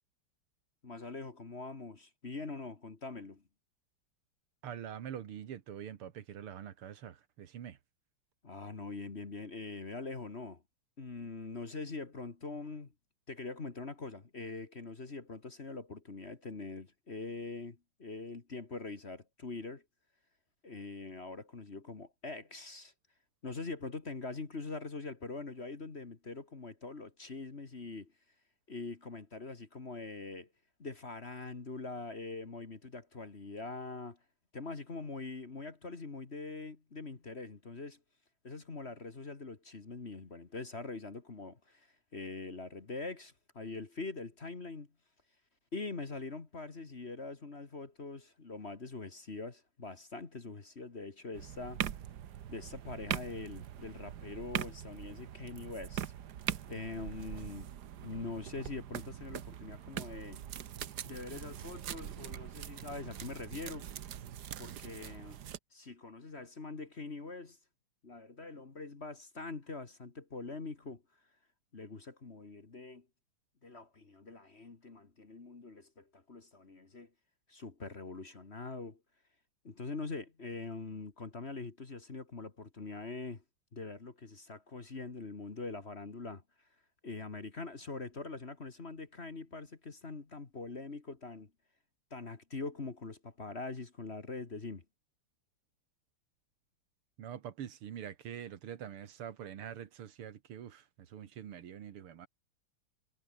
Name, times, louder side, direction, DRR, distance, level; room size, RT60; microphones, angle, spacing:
voice 1, 0.8-3.4 8.4-10.6 11.0-12.9 13.3-19.8 20.6-22.9 23.4-28.1 28.7-30.5 30.8-34.2 34.5-38.0 38.4-44.9 45.7-51.8 52.5-56.0 56.7-57.8 58.0-60.5 61.0-63.9 64.6-65.4 65.7-67.6 68.0-71.0 71.7-73.1 73.6-77.1 77.5-79.0 79.6-83.4 83.7-86.7 87.0-91.5 92.1-94.8, left 3 dB, 30° left, 1.9 m, -43 dB
voice 2, 4.6-7.8 97.2-102.3, right 9 dB, 80° right, 2.4 m, -45 dB
sound 1, 51.3-65.6, right 10 dB, 55° right, 1.4 m, -42 dB
omnidirectional pair, 2.4 m